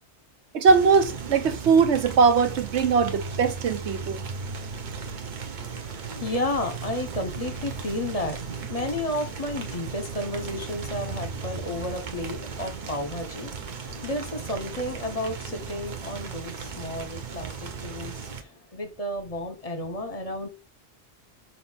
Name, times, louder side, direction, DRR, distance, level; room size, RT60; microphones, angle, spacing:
voice 1, 0.5-4.2, right 5 dB, 80° right, 1.1 m, -20 dB
sound 1, 0.7-18.4, right 5 dB, 50° right, 0.8 m, -36 dB
voice 2, 5.5-20.5, left 1 dB, 35° left, 0.9 m, -32 dB
6.3 x 2.7 x 5.5 m
omnidirectional pair, 1.1 m